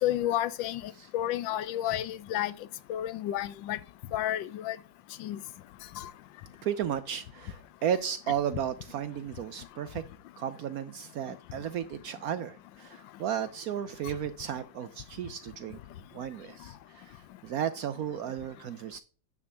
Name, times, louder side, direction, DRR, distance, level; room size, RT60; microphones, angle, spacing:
voice 1, 0.0-2.5 2.9-3.8 4.1-4.8 5.2-5.4 6.0-6.1, left 12 dB, 85° left, 1.3 m, -31 dB
voice 2, 6.6-10.0 10.4-15.8 16.1-19.0, right 9 dB, 70° right, 0.9 m, -34 dB
9.6 x 3.5 x 6.8 m
omnidirectional pair, 2.0 m